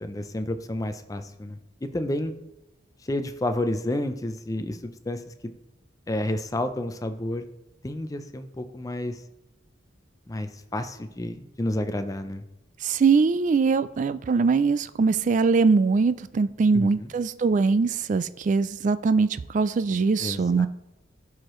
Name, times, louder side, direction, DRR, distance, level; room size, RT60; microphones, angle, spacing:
voice 1, 0.0-2.3 3.0-5.5 6.1-7.5 7.8-9.2 10.3-12.4 16.7-17.1 20.2-20.4, left 1 dB, 20° left, 9 dB, 0.5 m, -30 dB
voice 2, 12.8-20.7, right 4 dB, 40° right, 14 dB, 0.3 m, -22 dB
13.0 x 4.8 x 3.1 m, 0.92 s
head